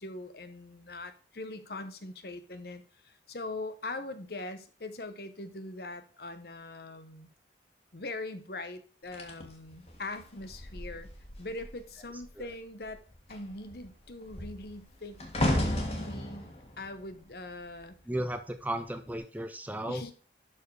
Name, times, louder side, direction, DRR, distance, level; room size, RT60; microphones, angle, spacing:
voice 1, 0.0-7.3 7.9-11.1 11.4-13.0 13.3-15.2 15.6-16.5 16.8-18.0 19.9-20.1, left 2 dB, 55° left, 10 dB, 1.0 m, -41 dB
sound 1, 9.1-11.8 12.1-12.5 12.8-18.1 18.9-19.1, left 1 dB, 35° left, 1.9 m, -34 dB
voice 2, 18.1-20.1, right 1 dB, 10° right, 9 dB, 0.6 m, -35 dB
12.0 x 4.5 x 4.8 m, 0.38 s
head